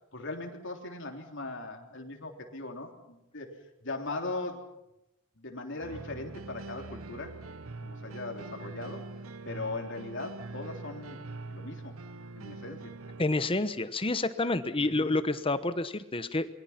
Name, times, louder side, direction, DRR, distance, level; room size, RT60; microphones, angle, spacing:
voice 1, 0.1-3.5 3.8-4.6 5.4-7.4 7.8-9.0 9.4-12.0 12.4-12.9 14.8-15.1, left 2 dB, 60° left, 3 dB, 3.5 m, -39 dB
sound 1, 5.8-13.2, right 3 dB, 75° right, 0.8 m, -43 dB
voice 2, 13.2-16.5, left 2 dB, 25° left, 12 dB, 1.1 m, -29 dB
27.5 x 23.0 x 5.9 m, 0.88 s
head